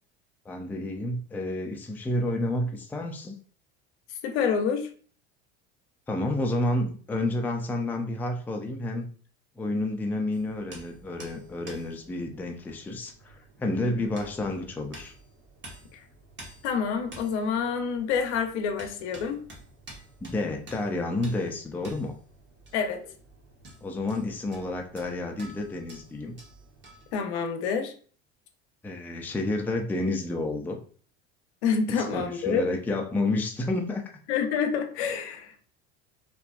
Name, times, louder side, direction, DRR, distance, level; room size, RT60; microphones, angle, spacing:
voice 1, 0.5-3.3 6.1-9.1 9.6-13.3 13.6-15.1 20.2-22.1 23.8-26.4 28.8-30.8 32.1-34.0, left 2 dB, 5° left, 3 dB, 0.3 m, -30 dB
voice 2, 4.2-4.9 13.8-14.1 15.9-16.0 16.6-19.4 22.7-23.0 27.1-27.9 31.6-32.6 34.3-35.5, left 6 dB, 80° left, 5 dB, 0.6 m, -27 dB
sound 1, 10.3-27.2, right 2 dB, 35° right, 0.8 m, -50 dB
2.6 x 2.2 x 2.3 m, 0.43 s
supercardioid pair, 90°, 33 cm